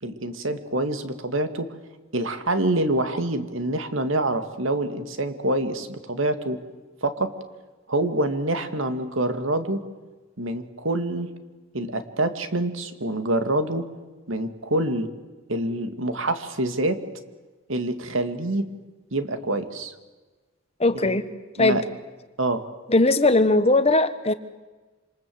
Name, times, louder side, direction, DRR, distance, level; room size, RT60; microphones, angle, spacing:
voice 1, 0.0-1.7 2.1-6.6 7.0-7.3 7.9-9.8 10.4-11.3 11.7-13.9 14.3-15.1 15.5-17.0 17.7-18.7 19.1-19.9 21.0-21.2 21.6-21.8 22.4-22.6, right 1 dB, 70° right, 9 dB, 2.2 m, -26 dB
voice 2, 20.8-21.3 21.6-21.8 22.9-24.3, left 2 dB, 30° left, 11 dB, 1.1 m, -19 dB
27.5 x 26.5 x 7.9 m, 1.3 s
head